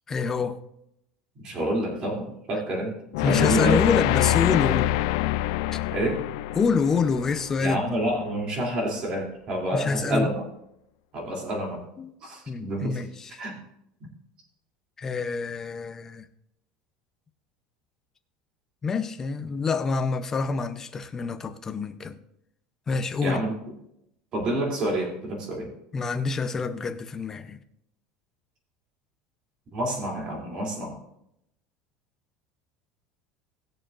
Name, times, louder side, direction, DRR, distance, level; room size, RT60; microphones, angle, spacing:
voice 1, 0.1-0.6 3.2-4.9 5.7-5.8 6.5-8.0 9.7-10.3 12.0-12.1 12.5-13.4 15.0-16.3 18.8-22.2 22.9-23.4 25.9-27.6, left 5 dB, 15° left, 0.6 m, -27 dB
voice 2, 1.4-2.9 3.2-4.0 5.9-6.2 7.6-10.4 11.1-11.8 12.2-13.0 13.4-13.6 23.2-23.5 24.3-25.7 29.7-31.0, right 1 dB, 30° right, 2.9 m, -28 dB
sound 1, 3.1-8.2, left 15 dB, 65° left, 0.4 m, -25 dB
19.5 x 6.9 x 2.5 m
cardioid pair, 175°, 3 cm